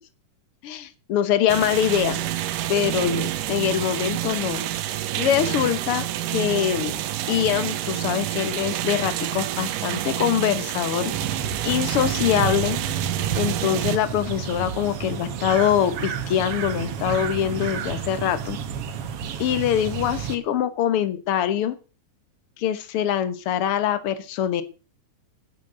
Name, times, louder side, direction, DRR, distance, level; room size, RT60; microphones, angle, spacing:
voice 1, 0.6-2.2 2.7-4.6 5.1-6.9 7.3-11.1 11.6-12.8 13.3-18.6 19.4-21.7 22.6-24.6, left 10 dB, 60° left, 12 dB, 1.6 m, -24 dB
sound 1, 1.5-14.0, right 13 dB, 80° right, 2.4 m, -28 dB
sound 2, 11.1-20.4, right 7 dB, 65° right, 1.6 m, -31 dB
9.6 x 8.7 x 7.9 m, 0.35 s
omnidirectional pair, 3.9 m